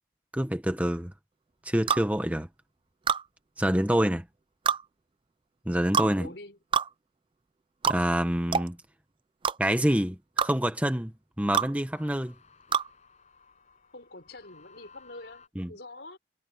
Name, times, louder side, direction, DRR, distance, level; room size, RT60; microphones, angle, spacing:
voice 1, 0.3-1.1 1.6-2.5 3.6-4.2 5.7-6.3 7.8-8.8 9.6-10.2 10.4-11.1 11.4-12.3 15.6-15.7, right 1 dB, 5° right, 1.0 m, -26 dB
sound 1, 1.5-2.3 11.9-15.5, left 5 dB, 35° left, 7.3 m, -58 dB
sound 2, 1.9-2.1 3.1-3.2 4.7-4.8 5.9-6.1 6.7-6.9 7.8-8.0 8.5-8.7 9.4-9.6 10.4-10.5 11.5-11.7 12.7-12.9, right 6 dB, 25° right, 0.3 m, -25 dB
voice 2, 6.2-6.6 13.9-16.2, left 2 dB, 65° left, 5.7 m, -45 dB
head